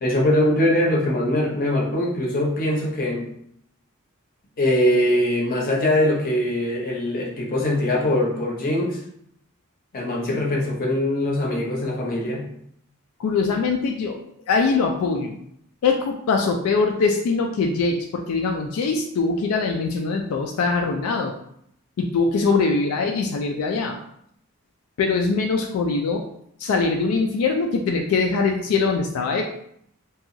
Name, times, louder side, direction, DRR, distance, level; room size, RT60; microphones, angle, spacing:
voice 1, 0.0-3.3 4.6-9.0 9.9-12.4, left 1 dB, 40° left, -2 dB, 0.6 m, -22 dB
voice 2, 13.2-14.2 14.5-15.4 15.8-21.3 22.0-24.0 25.0-26.2 26.6-29.5, left 4 dB, 80° left, 2 dB, 0.3 m, -22 dB
2.8 x 2.3 x 2.5 m, 0.71 s
head